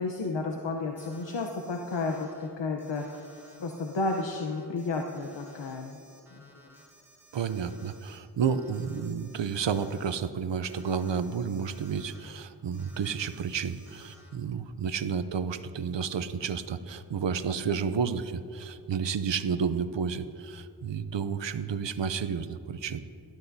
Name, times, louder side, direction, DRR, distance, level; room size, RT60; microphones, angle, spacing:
voice 1, 0.0-3.2 3.6-6.0 6.4-6.7, left 3 dB, 85° left, 2 dB, 0.8 m, -32 dB
Alarm, 1.0-2.5 2.8-8.2 8.4-10.2 10.6-12.3 12.7-14.4, right 1 dB, 5° right, 2.8 m, -56 dB
voice 2, 7.3-23.0, right 6 dB, 90° right, 12 dB, 0.6 m, -31 dB
18.5 x 12.0 x 2.7 m, 2.7 s
wide cardioid pair, 75°, 42 cm